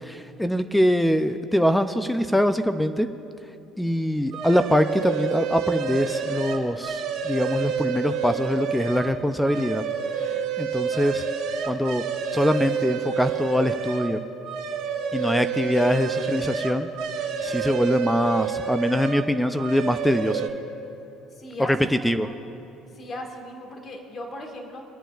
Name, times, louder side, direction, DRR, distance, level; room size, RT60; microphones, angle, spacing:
voice 1, 0.0-3.1 3.8-9.8 10.6-11.3 11.7-12.0 12.3-14.2 15.1-16.9 17.2-20.5 21.6-22.3, equal, 5° left, 10 dB, 0.5 m, -23 dB
sound 1, 4.3-9.1 9.4-14.1 14.4-19.2 19.6-20.5, right 6 dB, 65° right, 1.3 m, -29 dB
voice 2, 21.3-22.4 22.9-24.8, left 1 dB, 40° left, 2 dB, 1.8 m, -38 dB
26.5 x 8.9 x 2.5 m, 2.8 s
hypercardioid pair, 65°, 0 cm